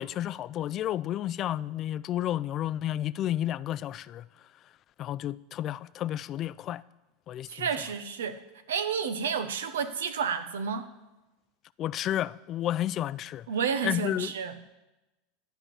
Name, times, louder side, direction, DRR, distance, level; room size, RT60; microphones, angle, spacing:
voice 1, 0.0-4.2 5.0-6.8 7.3-7.7 11.8-13.5 13.8-14.3, left 12 dB, 45° left, 0.4 m, -31 dB
voice 2, 7.5-8.4 8.7-10.9 13.5-14.5, right 6 dB, 80° right, 0.9 m, -30 dB
11.0 x 5.7 x 8.6 m
hypercardioid pair, 90°, 0 cm